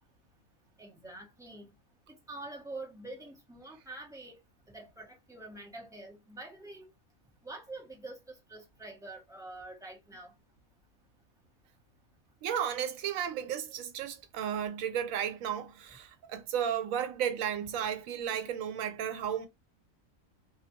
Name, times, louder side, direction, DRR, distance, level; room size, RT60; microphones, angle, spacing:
voice 1, 0.8-1.7 2.1-4.4 4.7-6.9 7.4-10.3, right 2 dB, 5° right, 0.3 m, -46 dB
voice 2, 12.4-19.5, right 9 dB, 80° right, 1.0 m, -33 dB
2.5 x 2.2 x 2.6 m
omnidirectional pair, 1.4 m